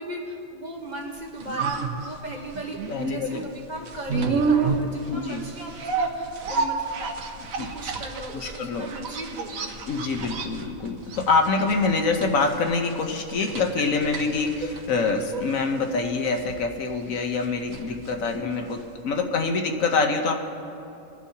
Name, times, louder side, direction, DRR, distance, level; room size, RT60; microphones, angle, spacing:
voice 1, 0.0-6.8 7.5-9.7 15.0-15.3 18.3-18.6, right 1 dB, 35° right, 0 dB, 1.3 m, -37 dB
sound 1, 1.0-19.0 19.3-19.4, right 4 dB, 80° right, 1.3 m, -31 dB
voice 2, 2.9-3.4 5.1-5.4 7.4-7.7 8.3-8.9 9.9-20.3, left 4 dB, 75° left, 4 dB, 1.3 m, -25 dB
24.0 x 11.0 x 2.8 m, 2.7 s
omnidirectional pair, 1.4 m